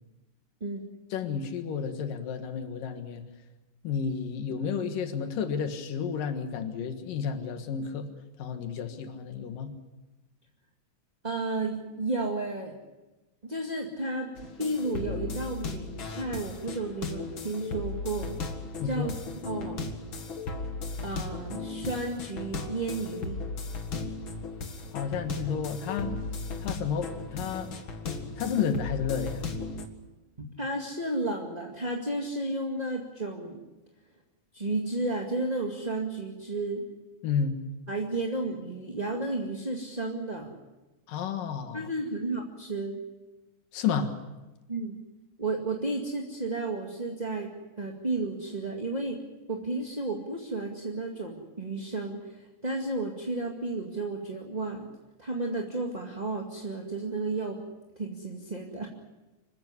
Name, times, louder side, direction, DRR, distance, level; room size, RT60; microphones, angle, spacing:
voice 1, 1.1-3.2 3.8-8.1 8.4-9.7 18.8-19.1 24.9-26.1 26.6-27.7 28.4-29.4 37.2-37.6 41.1-41.8 43.7-44.1, left 7 dB, 85° left, 7 dB, 3.3 m, -31 dB
voice 2, 11.2-12.7 13.4-18.4 18.8-19.2 19.4-19.8 21.0-23.4 30.4-33.6 34.5-36.8 37.9-40.6 41.7-43.0 44.7-45.0 45.4-47.5 47.8-49.2 49.5-54.9 55.2-57.6 57.9-58.9, right 2 dB, 15° right, 0 dB, 1.6 m, -32 dB
sound 1, 14.4-29.9, left 3 dB, 45° left, 2.2 m, -36 dB
26.0 x 14.5 x 9.8 m, 1.1 s
omnidirectional pair, 3.8 m